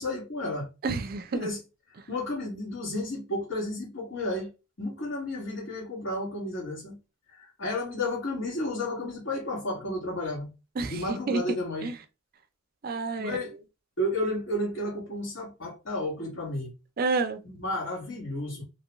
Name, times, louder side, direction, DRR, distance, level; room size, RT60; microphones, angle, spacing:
voice 1, 0.0-0.7 1.3-1.6 2.1-4.5 4.8-7.0 7.4-10.5 10.9-11.9 13.2-13.5 14.0-16.7 17.4-18.6, left 1 dB, 65° left, 1.5 m, -32 dB
voice 2, 0.8-1.5 10.8-11.9 12.8-13.4 17.0-17.4, right 3 dB, 45° right, 0.4 m, -29 dB
3.0 x 2.2 x 2.9 m
head